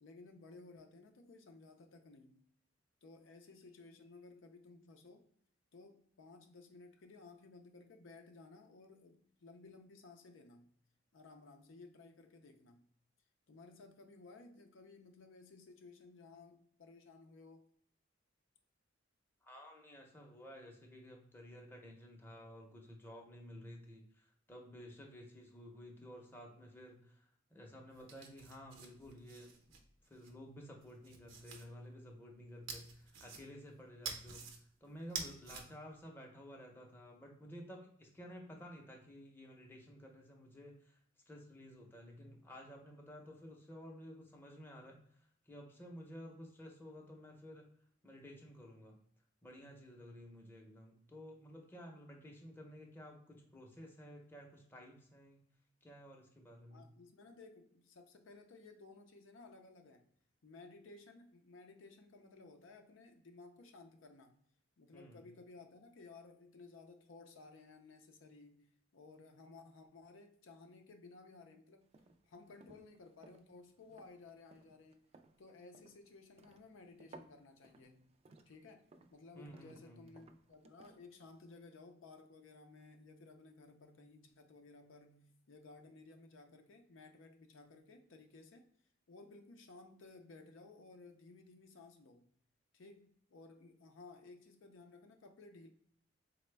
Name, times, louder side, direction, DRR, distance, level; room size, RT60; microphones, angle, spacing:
voice 1, 0.0-2.4 3.0-5.3 5.7-10.7 11.1-12.9 13.5-17.7 56.7-60.0 60.4-64.4 64.8-71.9 72.3-75.0 75.4-78.1 78.5-88.6 89.1-92.3 92.7-95.7, left 3 dB, 80° left, 5 dB, 0.5 m, -57 dB
voice 2, 19.4-29.8 30.1-34.6 34.8-41.0 41.3-47.7 48.0-49.0 49.4-55.4 55.8-56.8 64.9-65.2 79.3-80.0, equal, 10° left, 0 dB, 0.7 m, -53 dB
sound 1, 27.9-30.3 30.8-31.7 32.7-33.7 34.0-34.6 35.0-35.6, right 5 dB, 85° right, 0.7 m, -47 dB
sound 2, 71.8-81.4, right 3 dB, 35° right, 0.3 m, -62 dB
4.0 x 2.1 x 3.3 m, 0.65 s
head